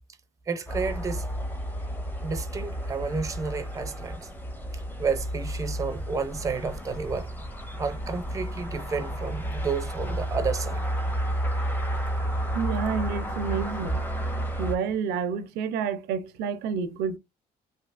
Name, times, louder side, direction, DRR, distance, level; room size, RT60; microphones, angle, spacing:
voice 1, 0.5-1.3 2.2-4.3 4.7-7.3 7.8-10.9, right 5 dB, 20° right, 0.5 m, -31 dB
sound 1, 0.7-14.8, right 1 dB, 10° left, 0.7 m, -31 dB
voice 2, 12.5-14.0 14.6-17.2, right 6 dB, 85° right, 0.5 m, -29 dB
3.2 x 2.7 x 2.4 m
cardioid pair, 110°, 17 cm